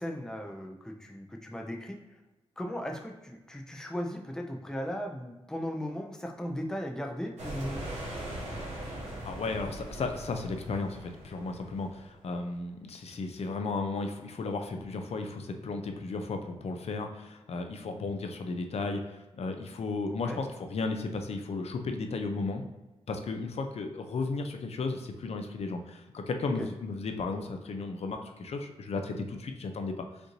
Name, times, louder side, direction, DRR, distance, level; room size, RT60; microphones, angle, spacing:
voice 1, 0.0-2.0 2.6-7.8 20.1-20.4 26.6-26.7, equal, 5° left, 2 dB, 0.5 m, -37 dB
sound 1, 7.4-12.3, right 1 dB, 85° right, 1.2 m, -40 dB
voice 2, 9.2-22.6 23.1-30.0, left 3 dB, 65° left, 5 dB, 0.5 m, -34 dB
5.1 x 2.6 x 3.0 m, 1.1 s
wide cardioid pair, 105°, 11 cm